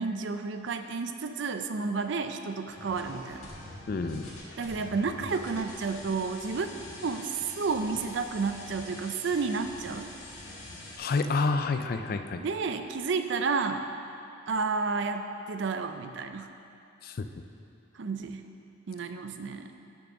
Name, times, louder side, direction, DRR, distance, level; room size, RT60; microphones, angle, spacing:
voice 1, 0.0-3.5 4.6-6.7 7.0-7.3 7.6-10.1 12.4-13.9 14.5-16.5 18.0-18.4 18.9-19.7, right 4 dB, 60° right, 8 dB, 0.4 m, -31 dB
sound 1, 2.7-11.0, left 2 dB, 85° left, 1.8 m, -45 dB
voice 2, 3.9-4.3 11.0-12.4 17.0-17.3, left 4 dB, 45° left, 8 dB, 0.4 m, -28 dB
6.6 x 6.3 x 5.8 m, 2.7 s
head